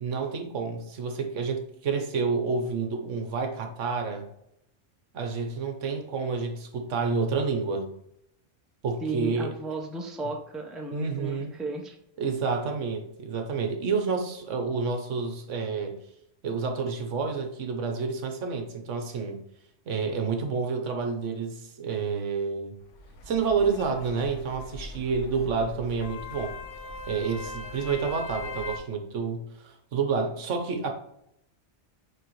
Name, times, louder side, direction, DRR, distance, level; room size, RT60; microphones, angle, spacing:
voice 1, 0.0-4.3 5.1-7.9 8.8-9.5 10.9-11.5 12.2-16.0 16.4-19.4 19.9-22.7 23.3-26.5 27.1-30.9, right 5 dB, 75° right, 5 dB, 1.2 m, -29 dB
voice 2, 9.0-12.0, right 3 dB, ahead, 2 dB, 0.6 m, -34 dB
sound 1, 22.8-28.8, left 2 dB, 75° left, 1.0 m, -40 dB
9.1 x 3.4 x 3.1 m, 0.77 s
omnidirectional pair, 1.3 m